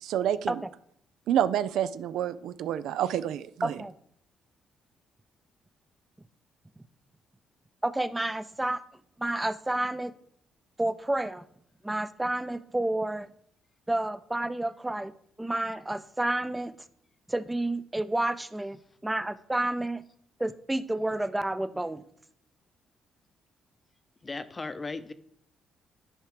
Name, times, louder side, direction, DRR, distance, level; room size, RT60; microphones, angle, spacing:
voice 1, 0.0-0.6 1.3-3.7, right 10 dB, 80° right, 0.4 m, -28 dB
voice 2, 3.6-3.9 7.8-8.8 9.2-10.1 10.8-11.4 11.8-13.3 13.9-15.1 15.4-16.7 17.3-20.0 20.4-22.0, right 1 dB, 10° right, 0.5 m, -30 dB
voice 3, 24.2-25.1, left 3 dB, 25° left, 0.7 m, -36 dB
10.5 x 4.6 x 5.0 m
cardioid pair, 90°, 0 cm